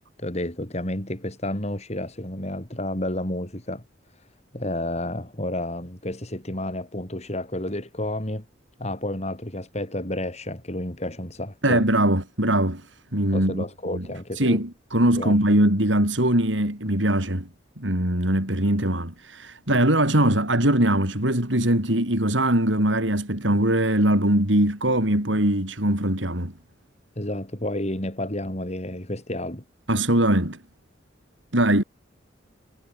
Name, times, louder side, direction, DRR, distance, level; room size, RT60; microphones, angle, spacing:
voice 1, 0.2-3.8 4.5-8.4 8.8-11.9 13.3-14.6 15.1-15.4 27.2-29.6, left 1 dB, 35° left, 4.5 m, -30 dB
voice 2, 11.6-12.8 13.1-13.6 13.9-14.0 14.4-17.5 17.8-26.5 29.9-30.6 31.5-31.8, right 1 dB, 75° right, 5.9 m, -21 dB
head